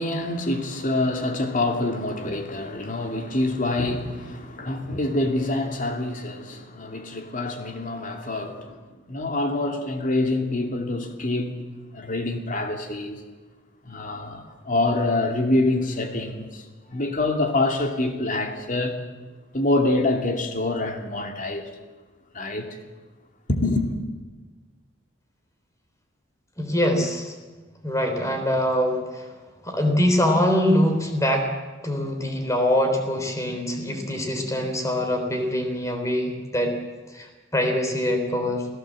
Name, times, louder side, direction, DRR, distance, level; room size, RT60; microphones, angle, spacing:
voice 1, 0.0-8.8 9.1-11.6 11.9-13.2 13.8-19.0 19.5-21.7 22.3-22.8 23.5-23.9, left 2 dB, 45° left, 2.6 m, -26 dB
voice 2, 26.6-27.3 27.8-29.3 29.6-31.5 31.8-36.7 37.1-38.7, left 1 dB, 15° left, 3.6 m, -23 dB
27.0 x 16.0 x 7.6 m
head